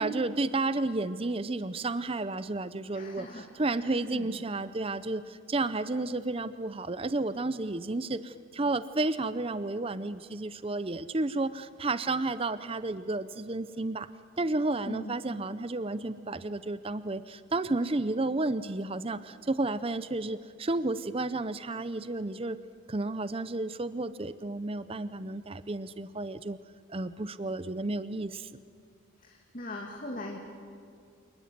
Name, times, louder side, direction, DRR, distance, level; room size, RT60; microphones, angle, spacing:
voice 1, 0.0-14.1 14.4-22.6 22.9-26.6 26.9-28.6, right 2 dB, 25° right, 14 dB, 0.6 m, -32 dB
voice 2, 2.9-3.5 3.8-4.4 14.9-15.1 29.2-30.4, left 1 dB, 40° left, 0 dB, 2.5 m, -40 dB
28.0 x 19.5 x 9.5 m, 2.4 s
head